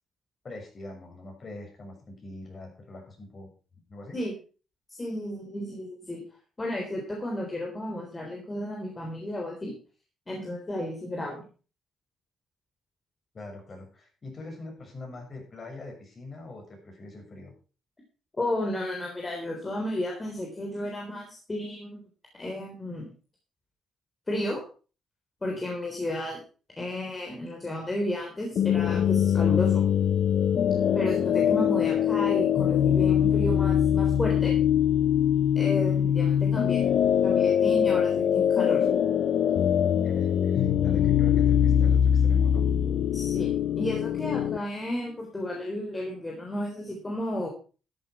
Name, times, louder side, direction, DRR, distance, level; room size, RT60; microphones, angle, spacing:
voice 1, 0.4-3.5 3.9-4.2 13.3-17.5 40.0-42.6, left 2 dB, 40° left, 1 dB, 6.9 m, -43 dB
voice 2, 5.0-6.2 6.6-9.8 10.3-11.5 18.4-22.0 22.3-23.1 24.3-24.6 25.4-26.4 26.8-29.9 30.9-34.5 35.6-36.9 37.2-38.9 43.1-47.5, left 1 dB, 20° left, 0 dB, 3.7 m, -32 dB
sound 1, 28.6-44.6, left 9 dB, 65° left, 0.9 m, -23 dB
13.0 x 9.0 x 4.8 m, 0.37 s
cardioid pair, 90°, 0 cm